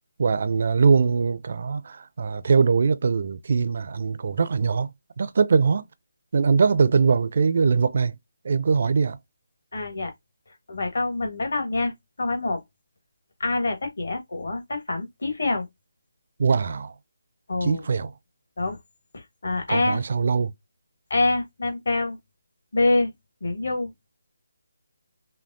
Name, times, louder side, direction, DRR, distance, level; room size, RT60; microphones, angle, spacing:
voice 1, 0.2-4.9 5.2-5.8 6.3-8.1 8.4-9.2 16.4-16.9 17.6-18.1 19.7-20.5, right 5 dB, 45° right, 0.4 m, -22 dB
voice 2, 9.7-10.1 10.7-12.6 13.4-15.7 17.5-17.8 18.6-18.8 19.1-20.0 21.1-22.2 22.7-23.1 23.4-23.9, left 2 dB, 55° left, 1.5 m, -26 dB
5.6 x 2.2 x 2.6 m
figure-of-eight pair, 150°, 0 cm